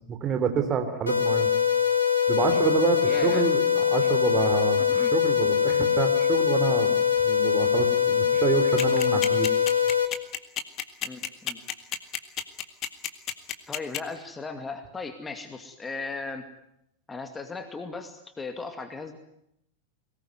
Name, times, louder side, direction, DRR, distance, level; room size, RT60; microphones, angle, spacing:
voice 1, 0.1-1.5 2.3-6.9 7.2-9.5, right 7 dB, 30° right, 7 dB, 3.6 m, -28 dB
sound 1, 1.1-10.1, left 8 dB, 75° left, 2.0 m, -23 dB
voice 2, 3.1-3.5 4.9-5.1 11.0-11.6 13.7-16.4 17.1-19.2, left 4 dB, 15° left, 7 dB, 2.4 m, -37 dB
sound 2, 8.8-14.0, left 11 dB, 35° left, 2.0 m, -30 dB
23.5 x 19.5 x 9.5 m, 0.78 s
figure-of-eight pair, 90°, 0 cm